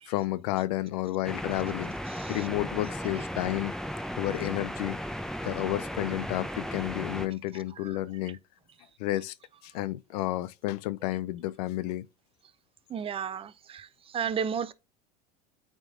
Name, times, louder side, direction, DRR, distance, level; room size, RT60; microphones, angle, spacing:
voice 1, 0.1-1.9 2.3-3.7 4.2-5.0 5.4-8.4 9.0-9.3 9.6-12.1, left 16 dB, 70° left, 0.5 m, -31 dB
sound 1, 1.2-7.3, equal, 5° left, 0.8 m, -36 dB
voice 2, 2.1-2.5 3.2-3.3 7.5-7.9 8.2-8.3 12.9-14.7, right 7 dB, 25° right, 0.6 m, -34 dB
9.0 x 3.7 x 3.6 m
hypercardioid pair, 95°, 21 cm